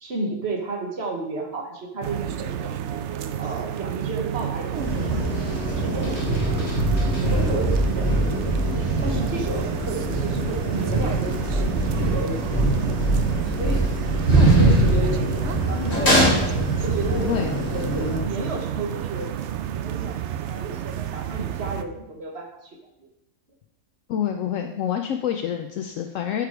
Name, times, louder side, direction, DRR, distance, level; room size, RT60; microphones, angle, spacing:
voice 1, 0.0-2.7 3.4-6.8 7.1-8.1 9.0-13.0 13.6-13.8 14.3-15.3 15.6-16.2 16.8-19.3 19.7-22.8, right 3 dB, 50° right, 2 dB, 1.6 m, -32 dB
sound 1, 2.0-21.8, right 10 dB, 65° right, 0.8 m, -31 dB
sound 2, 4.7-18.2, right 1 dB, 50° left, 3.7 m, -23 dB
voice 2, 17.2-17.5 24.1-26.5, left 9 dB, 75° left, 5 dB, 1.0 m, -27 dB
11.5 x 5.0 x 4.7 m, 0.87 s
omnidirectional pair, 1.4 m